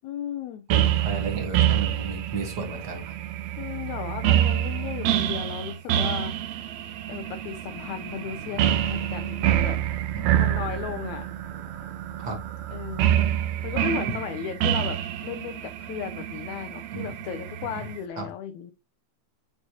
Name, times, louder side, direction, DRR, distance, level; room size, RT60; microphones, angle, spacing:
voice 1, 0.0-0.6 3.6-6.7 7.1-9.8 10.4-11.3 12.7-13.3 13.6-18.7, left 8 dB, 75° left, 6 dB, 1.9 m, -35 dB
voice 2, 0.7-3.1 10.1-10.3 12.2-12.4 12.7-12.8 13.1-13.3 16.9-17.1 17.7-17.8 18.1-18.2, right 3 dB, 45° right, 3 dB, 1.4 m, -34 dB
sound 1, 0.7-18.0, right 12 dB, 75° right, 1.8 m, -27 dB
8.1 x 4.3 x 2.8 m, 0.24 s
omnidirectional pair, 3.5 m